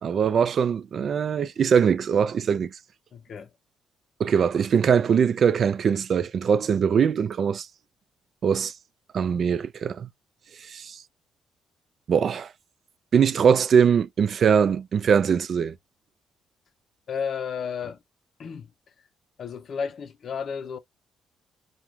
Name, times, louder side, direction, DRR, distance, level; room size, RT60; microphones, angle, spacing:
voice 1, 0.0-2.7 4.2-7.7 8.4-8.7 9.1-10.1 10.7-11.0 12.1-12.5 13.1-15.7, right 7 dB, 55° right, 0.3 m, -22 dB
voice 2, 3.1-3.5 17.1-18.0 18.4-18.7 19.4-20.8, left 6 dB, 55° left, 0.5 m, -32 dB
2.4 x 2.2 x 3.0 m
cardioid pair, 90°, 0 cm